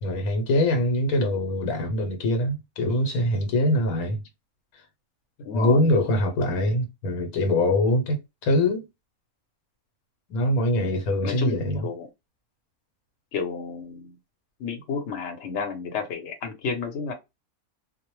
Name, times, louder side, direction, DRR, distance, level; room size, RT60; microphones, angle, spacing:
voice 1, 0.0-4.2 5.5-8.9 10.3-11.9, left 1 dB, 80° left, 1.1 m, -23 dB
voice 2, 5.4-5.9 11.2-12.1 13.3-14.2 14.6-17.1, left 5 dB, 60° left, 1.0 m, -31 dB
2.4 x 2.1 x 2.9 m
omnidirectional pair, 1.5 m